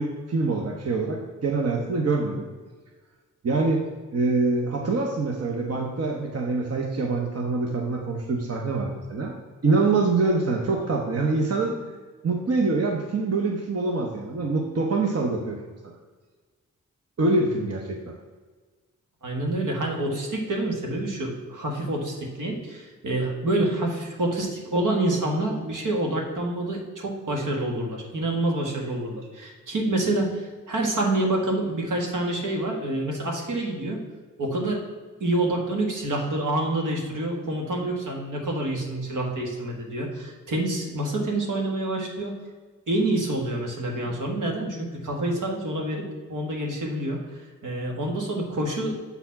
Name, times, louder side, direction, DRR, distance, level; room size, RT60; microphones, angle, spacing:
voice 1, 0.0-2.5 3.4-3.8 4.1-9.3 9.6-11.8 12.2-15.6 15.8-15.9 17.2-18.1, right 3 dB, 50° right, 1 dB, 1.0 m, -25 dB
voice 2, 19.2-34.0 34.4-34.8 35.2-42.4 42.9-48.9, right 1 dB, 75° right, 0 dB, 1.6 m, -27 dB
7.0 x 4.1 x 5.7 m, 1.4 s
cardioid pair, 55°, 32 cm